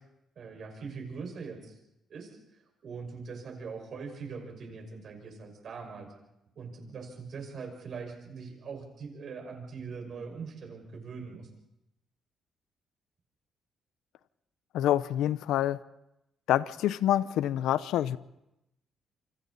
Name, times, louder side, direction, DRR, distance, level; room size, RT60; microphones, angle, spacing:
voice 1, 0.4-1.8 2.1-2.3 2.8-6.1 6.6-11.5, right 5 dB, 55° right, 5.8 m, -42 dB
voice 2, 14.7-15.8 16.5-18.2, left 12 dB, 85° left, 0.7 m, -27 dB
28.0 x 25.5 x 4.2 m
cardioid pair, 90°, 0 cm